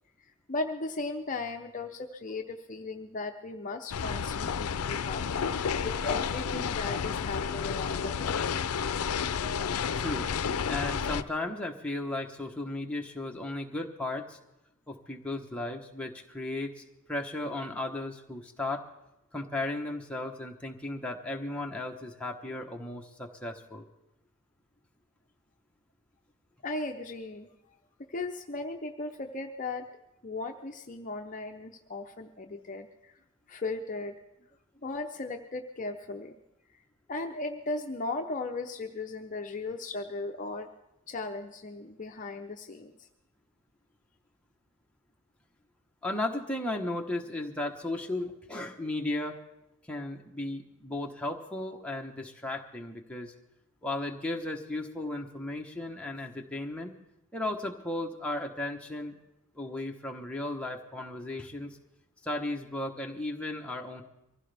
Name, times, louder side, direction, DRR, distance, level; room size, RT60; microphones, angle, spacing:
voice 1, 0.5-5.2 5.8-8.5 26.6-27.5 28.1-29.8 30.2-33.1 33.5-34.2 34.8-36.3 37.1-40.7 41.1-43.1, left 3 dB, 35° left, 4 dB, 0.6 m, -37 dB
sound 1, 3.9-11.2, left 6 dB, 85° left, 0.5 m, -31 dB
voice 2, 9.9-10.3 10.7-14.4 14.9-18.8 19.3-23.8 46.0-49.4 49.9-53.3 53.8-56.9 57.3-59.2 59.6-61.8 62.2-64.0, left 2 dB, 5° left, 0 dB, 1.1 m, -35 dB
23.5 x 15.5 x 3.4 m, 0.89 s
head